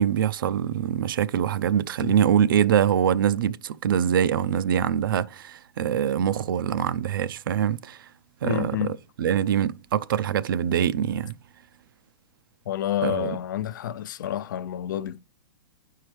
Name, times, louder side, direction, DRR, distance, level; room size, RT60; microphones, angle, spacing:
voice 1, 0.0-8.1 8.4-8.8 9.2-11.4 13.0-13.4, right 9 dB, 70° right, 0.5 m, -24 dB
voice 2, 8.4-8.9 12.7-15.2, left 11 dB, 60° left, 0.5 m, -29 dB
10.5 x 4.6 x 3.3 m
hypercardioid pair, 160°, 12 cm